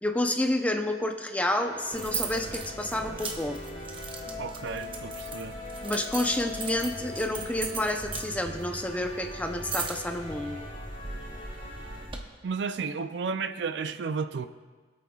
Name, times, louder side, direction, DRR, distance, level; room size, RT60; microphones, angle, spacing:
voice 1, 0.0-3.6 5.8-10.6, left 1 dB, 10° left, 5 dB, 0.6 m, -29 dB
sound 1, 1.4-12.0, left 3 dB, 45° left, 4.1 m, -42 dB
sound 2, 1.9-12.2, right 4 dB, 30° right, 0.9 m, -38 dB
voice 2, 4.4-5.5 12.4-14.5, right 5 dB, 75° right, 10 dB, 0.4 m, -32 dB
24.0 x 8.5 x 2.4 m, 1.4 s
head